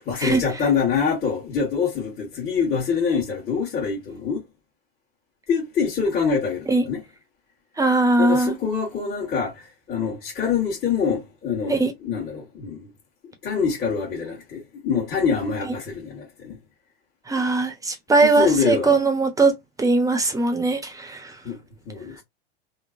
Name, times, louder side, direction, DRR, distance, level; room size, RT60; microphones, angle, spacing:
voice 1, 0.0-4.4 5.5-7.0 8.2-12.9 13.4-16.6 18.2-19.0 21.4-21.6 21.8-22.2, left 6 dB, 30° left, 1.5 m, -25 dB
voice 2, 7.8-8.6 11.7-11.9 17.3-19.5 19.8-21.4, right 3 dB, 10° right, 0.9 m, -20 dB
3.7 x 2.2 x 2.5 m
hypercardioid pair, 100°, 31 cm